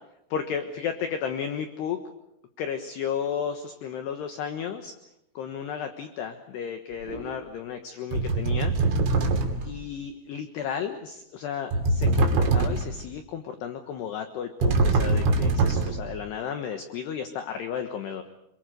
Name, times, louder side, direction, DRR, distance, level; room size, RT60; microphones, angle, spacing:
voice 1, 0.3-2.0 2.6-4.9 5.4-8.7 9.7-18.2, left 7 dB, 65° left, 7 dB, 3.0 m, -33 dB
sound 1, 7.1-7.3 8.1-9.8 11.7-13.1 14.6-16.2, right 3 dB, 65° right, 4.8 m, -23 dB
28.0 x 23.0 x 6.7 m, 0.82 s
omnidirectional pair, 5.8 m